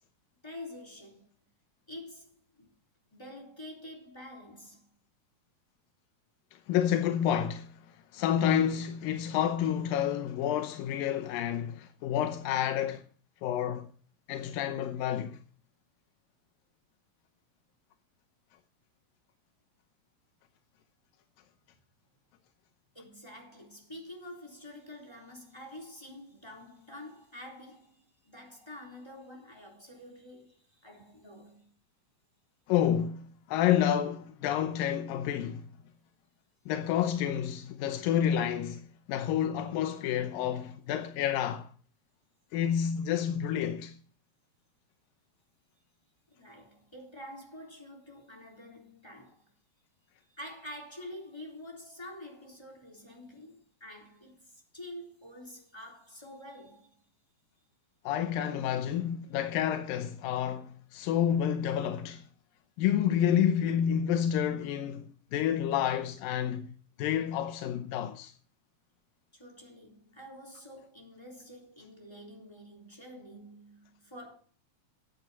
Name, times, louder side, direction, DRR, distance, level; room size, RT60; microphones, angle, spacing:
voice 1, 0.4-1.3 1.9-2.7 3.1-4.9 22.9-31.7 46.3-49.5 50.3-56.9 69.3-74.3, left 1 dB, 10° left, 3.2 m, -47 dB
voice 2, 6.7-7.7 8.1-13.0 13.4-13.9 14.3-15.4 32.7-35.7 36.7-41.7 42.5-43.9 58.0-62.2 62.8-66.7 67.0-68.3, left 9 dB, 90° left, 2.6 m, -29 dB
14.5 x 8.2 x 4.2 m
omnidirectional pair, 3.9 m